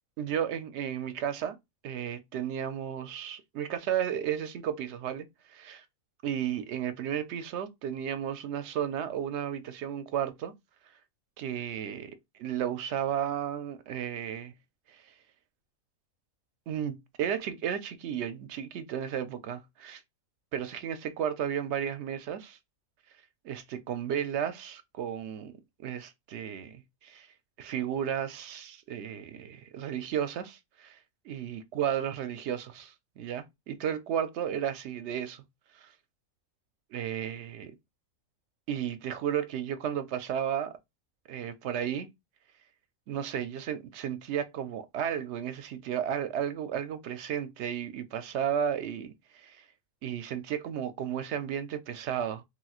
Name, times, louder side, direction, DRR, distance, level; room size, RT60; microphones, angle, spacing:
voice 1, 0.2-1.6 1.8-5.8 6.2-10.5 11.4-12.1 12.4-14.5 14.9-15.0 16.7-20.0 20.5-22.6 23.4-25.5 25.8-27.3 27.6-31.0 31.3-35.4 35.8-35.9 36.9-37.7 38.7-40.7 41.3-42.1 43.1-49.6 50.0-52.4, right 9 dB, 65° right, 0.7 m, -33 dB
3.2 x 3.0 x 2.3 m
omnidirectional pair, 1.4 m